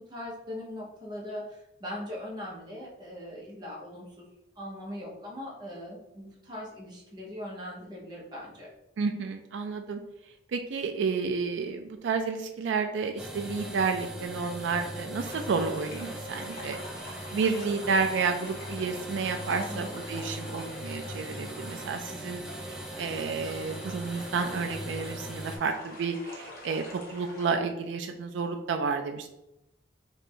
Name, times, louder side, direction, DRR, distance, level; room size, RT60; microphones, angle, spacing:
voice 1, 0.0-4.3 4.6-8.7 19.5-20.0, left 1 dB, 25° right, -4 dB, 0.9 m, -40 dB
voice 2, 9.0-10.0 10.5-16.8 17.3-22.4 22.7-26.8 27.1-29.3, right 5 dB, 75° right, 5 dB, 0.3 m, -31 dB
sound 1, 13.2-25.6, equal, 5° right, 0.4 m, -40 dB
sound 2, 15.2-27.5, left 1 dB, 50° left, 0.9 m, -46 dB
3.1 x 2.5 x 4.4 m, 0.88 s
head